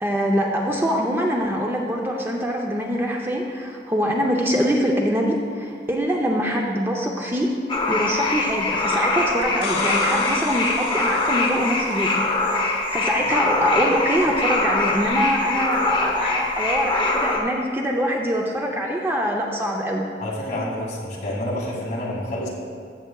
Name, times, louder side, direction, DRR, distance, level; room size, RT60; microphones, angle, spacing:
voice 1, 0.0-7.6 7.9-12.2 12.5-20.1, equal, 15° right, 0 dB, 0.5 m, -24 dB
sound 1, 7.7-17.4, left 2 dB, 30° left, 0.9 m, -23 dB
sound 2, 9.4-12.2 15.1-15.2, left 3 dB, 70° left, 1.0 m, -32 dB
voice 2, 20.2-22.5, left 1 dB, 45° left, -4 dB, 2.1 m, -28 dB
14.5 x 7.4 x 2.3 m, 2.3 s
head